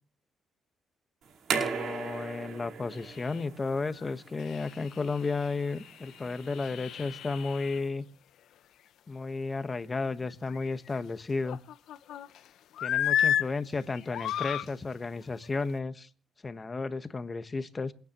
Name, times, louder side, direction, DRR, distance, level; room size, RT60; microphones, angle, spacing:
sound 1, 1.2-7.9, right 6 dB, 70° right, 4.8 m, -38 dB
voice 1, 1.5-8.0 9.1-11.6 12.8-16.1 16.4-17.9, left 3 dB, 30° left, 1.2 m, -33 dB
sound 2, 3.0-3.4 4.0-4.1 4.4-7.8 10.3-11.0 11.4-12.4 12.8-13.5 13.9-14.7 15.4-15.6, left 10 dB, 75° left, 0.7 m, -33 dB
28.0 x 9.5 x 3.0 m
cardioid pair, 90°, 0 cm